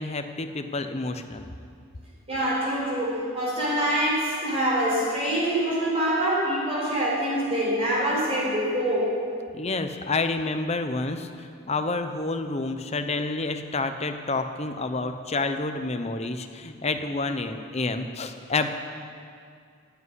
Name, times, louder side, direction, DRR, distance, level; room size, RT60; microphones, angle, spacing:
voice 1, 0.0-1.4 9.5-11.3 11.7-18.7, left 3 dB, 30° left, 8 dB, 0.8 m, -29 dB
voice 2, 2.3-9.2, right 1 dB, 30° right, -7 dB, 4.5 m, -25 dB
15.0 x 8.3 x 9.7 m, 2.3 s
head